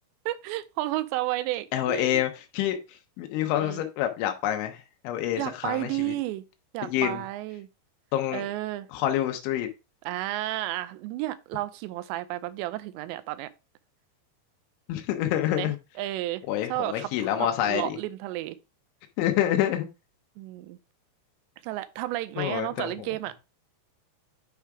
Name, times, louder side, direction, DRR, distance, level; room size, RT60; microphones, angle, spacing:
voice 1, 0.3-2.2 3.6-3.8 5.3-6.4 6.7-7.7 8.3-8.9 10.1-13.5 15.5-15.7 16.0-16.4 16.7-18.6 20.4-20.8 21.6-23.3, right 16 dB, 85° right, 2.7 m, -32 dB
voice 2, 1.7-6.1 6.9-7.2 8.1-8.4 8.9-9.7 14.9-15.8 16.5-18.0 19.2-19.9 22.4-23.1, left 11 dB, 90° left, 3.2 m, -27 dB
9.4 x 3.5 x 4.8 m
omnidirectional pair, 5.2 m